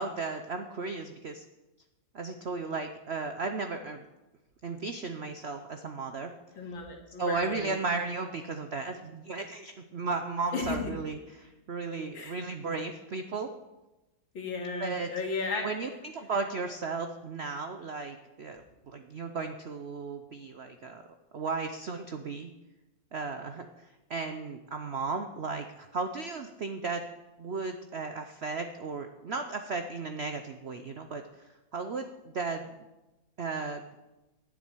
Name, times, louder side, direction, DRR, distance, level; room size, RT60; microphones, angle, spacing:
voice 1, 0.0-1.4 2.1-4.0 4.6-6.3 7.2-13.5 14.8-15.1 15.6-21.0 21.3-22.5 23.1-23.7 24.1-27.1 27.4-32.8 33.4-34.1, right 4 dB, 70° right, 7 dB, 0.6 m, -35 dB
voice 2, 6.6-7.8 10.5-10.9 12.1-12.4 14.3-15.7, left 4 dB, 85° left, 1 dB, 2.8 m, -34 dB
9.7 x 7.7 x 8.8 m, 1.0 s
omnidirectional pair, 2.1 m